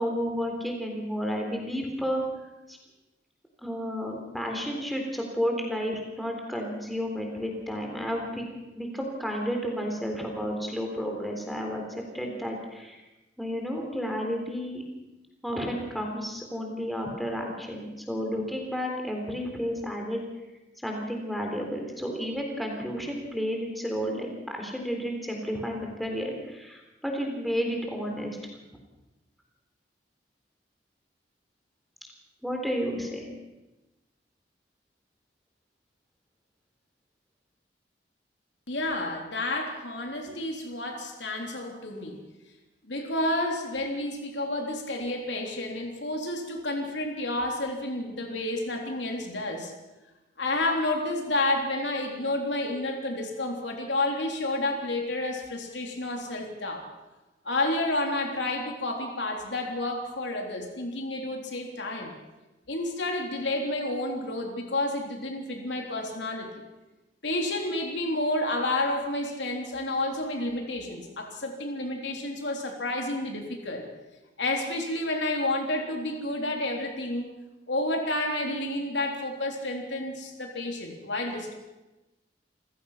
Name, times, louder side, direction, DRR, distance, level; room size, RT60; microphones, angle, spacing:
voice 1, 0.0-2.2 2.7-2.8 3.6-8.5 8.7-13.0 13.4-14.8 15.4-20.2 20.8-28.4 32.4-33.3, equal, ahead, 1 dB, 3.7 m, -31 dB
voice 2, 38.7-42.2 42.8-49.7 50.4-56.8 57.5-62.1 62.7-66.5 67.2-73.9 74.4-77.3 77.7-81.5, left 1 dB, 80° left, 2 dB, 3.5 m, -30 dB
29.0 x 15.5 x 5.8 m, 1.1 s
head